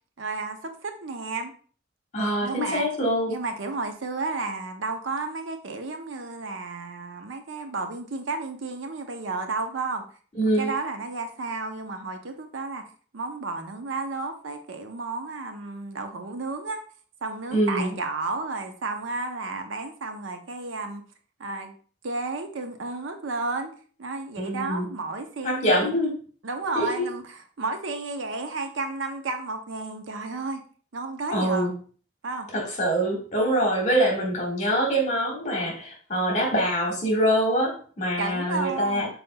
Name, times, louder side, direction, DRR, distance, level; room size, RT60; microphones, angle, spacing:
voice 1, 0.2-1.5 2.4-2.9 3.3-10.0 10.4-12.9 13.1-16.8 17.2-21.0 21.4-21.7 22.0-23.7 24.0-26.0 26.4-30.6 30.9-31.7 32.2-32.5 38.2-39.1, right 3 dB, 85° right, 6 dB, 0.7 m, -32 dB
voice 2, 2.1-3.4 10.3-10.7 17.5-17.9 24.4-24.9 25.4-26.1 26.7-27.0 31.3-31.7 32.5-39.1, equal, 35° left, -2 dB, 1.7 m, -24 dB
5.6 x 4.1 x 2.2 m, 0.43 s
head